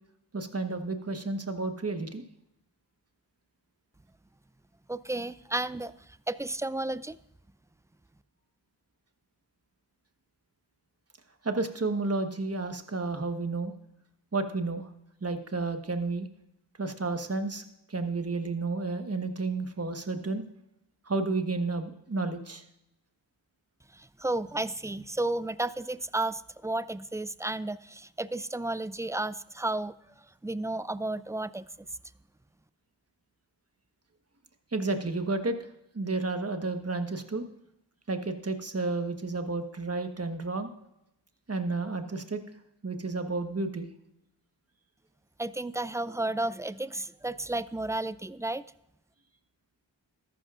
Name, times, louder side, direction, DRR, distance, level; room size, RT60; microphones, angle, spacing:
voice 1, 0.3-2.2 11.4-13.7 14.3-14.9 15.2-16.3 16.8-17.6 17.9-20.4 21.0-22.6 34.7-35.6 35.9-37.4 38.1-40.7 41.5-42.4 42.8-43.9, right 3 dB, 35° right, 7 dB, 1.3 m, -31 dB
voice 2, 4.9-7.2 23.9-29.9 30.4-31.7 45.4-48.6, right 2 dB, 10° right, 16 dB, 0.3 m, -32 dB
13.5 x 11.5 x 2.5 m, 0.83 s
cardioid pair, 45°, 42 cm